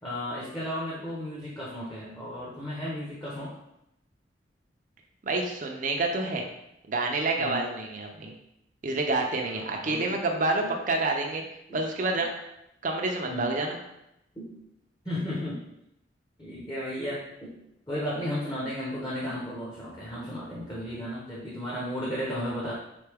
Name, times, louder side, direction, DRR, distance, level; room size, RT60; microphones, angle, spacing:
voice 1, 0.0-3.6 7.4-7.6 9.5-10.2 10.6-10.7 13.3-13.5 14.4-14.5 15.0-15.6 16.4-17.6 17.9-22.7, equal, 20° left, -7 dB, 0.9 m, -34 dB
voice 2, 5.2-6.5 6.9-8.3 8.8-11.4 11.7-12.3 12.8-13.8, right 2 dB, 45° right, 2 dB, 0.5 m, -28 dB
3.8 x 3.4 x 3.4 m, 0.83 s
head